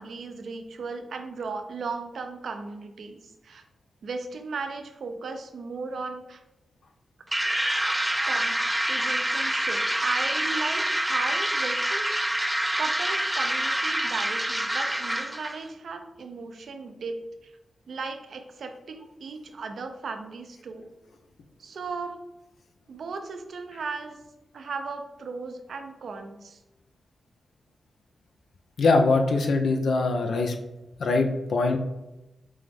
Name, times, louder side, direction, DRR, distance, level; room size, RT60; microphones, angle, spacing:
voice 1, 0.0-3.6 4.0-6.4 8.2-8.5 8.9-12.1 12.4-17.5 17.9-20.9 21.6-22.2 22.9-24.2 24.5-26.6, right 4 dB, 75° right, 6 dB, 0.5 m, -36 dB
sound 1, 7.3-15.6, right 1 dB, 10° right, 0.4 m, -26 dB
voice 2, 28.8-30.6 31.0-31.8, left 3 dB, 80° left, 5 dB, 0.5 m, -22 dB
6.2 x 2.1 x 3.4 m, 0.98 s
cardioid pair, 45°, 0 cm